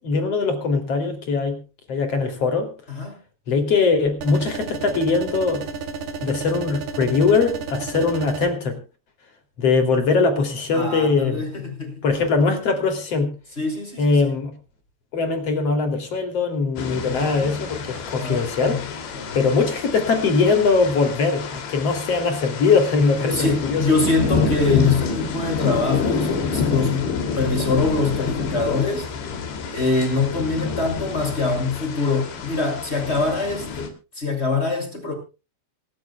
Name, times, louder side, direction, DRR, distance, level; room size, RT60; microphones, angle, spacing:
voice 1, 0.0-1.6 1.9-2.7 3.5-5.7 6.2-8.8 9.6-11.4 12.0-13.3 14.0-14.5 15.1-23.9, left 4 dB, 40° left, 7 dB, 3.5 m, -21 dB
sound 1, 4.2-8.5, right 5 dB, 70° right, 4.5 m, -32 dB
voice 2, 10.7-12.0 13.6-14.2 17.1-17.4 18.2-18.8 19.1-19.4 23.3-29.1 29.7-35.1, left 3 dB, 15° left, 4 dB, 6.4 m, -24 dB
sound 2, 16.8-33.9, left 5 dB, 85° left, 5.1 m, -28 dB
25.5 x 13.0 x 2.3 m, 0.32 s
omnidirectional pair, 5.0 m